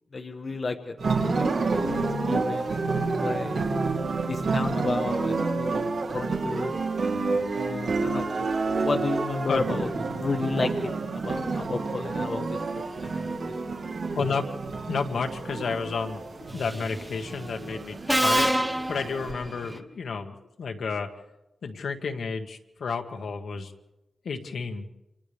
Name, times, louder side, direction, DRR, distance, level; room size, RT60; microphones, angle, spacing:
voice 1, 0.1-2.0 2.2-3.7 4.3-6.7 7.5-13.3, left 3 dB, 40° left, 4 dB, 1.0 m, -32 dB
sound 1, 1.0-19.3, right 3 dB, 70° right, 3.3 m, -29 dB
voice 2, 14.1-14.5 14.9-21.1 21.6-23.7 24.2-24.9, left 5 dB, 70° left, 4 dB, 1.6 m, -31 dB
Subway metro underground, 16.6-16.9 18.1-19.8, right 1 dB, 5° right, 0.9 m, -26 dB
29.0 x 27.0 x 3.5 m, 0.95 s
wide cardioid pair, 155°, 0 cm